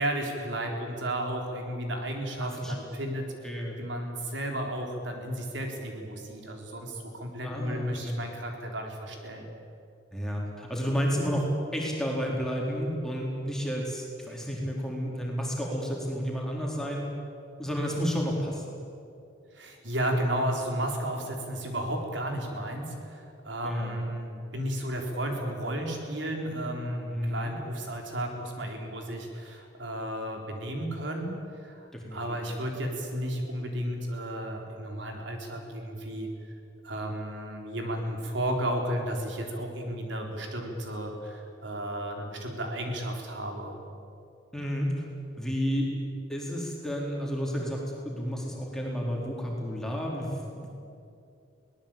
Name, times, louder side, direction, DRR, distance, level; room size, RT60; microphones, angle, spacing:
voice 1, 0.0-3.2 3.8-9.4 19.5-31.3 31.6-36.3 36.8-43.8, right 1 dB, 70° right, 2 dB, 3.7 m, -33 dB
voice 2, 3.4-3.8 7.4-8.2 10.1-17.0 17.6-18.8 23.6-24.0 27.1-27.5 31.9-32.6 44.5-45.1 45.4-45.9 46.3-50.8, equal, 5° left, -2 dB, 4.1 m, -31 dB
23.0 x 18.5 x 8.9 m, 2.6 s
head